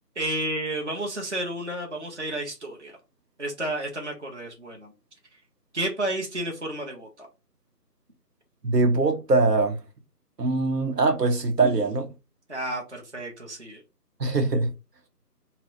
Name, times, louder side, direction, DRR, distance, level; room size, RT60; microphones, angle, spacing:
voice 1, 0.2-2.9 3.4-4.9 5.7-7.3 12.5-13.8, right 1 dB, 45° right, 0.7 m, -31 dB
voice 2, 8.6-9.8 10.4-12.1 14.2-14.7, right 3 dB, 75° right, 0.8 m, -22 dB
2.8 x 2.0 x 3.9 m
figure-of-eight pair, 175°, 48 cm